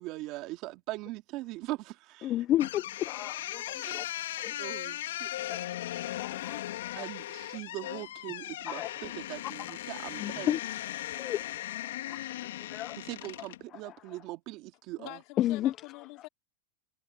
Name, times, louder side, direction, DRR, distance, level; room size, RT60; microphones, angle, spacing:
voice 1, 0.0-2.3 3.8-4.0 4.6-5.3 7.0-10.6 13.0-15.2, right 19 dB, 45° right, 2.2 m, -41 dB
voice 2, 2.2-4.0 4.4-4.7 5.5-5.6 6.4-6.6 6.9-7.1 8.7-8.9 9.7-9.8 10.2-10.6 10.9-13.0 13.7-14.2 15.4-15.7 16.2-16.3, left 13 dB, 35° left, 0.4 m, -33 dB
sound 1, 2.6-13.6, left 13 dB, 85° left, 3.0 m, -38 dB
voice 3, 3.7-4.1 5.9-6.7 15.0-16.3, left 24 dB, 50° left, 2.7 m, -46 dB
supercardioid pair, 140°, 0 cm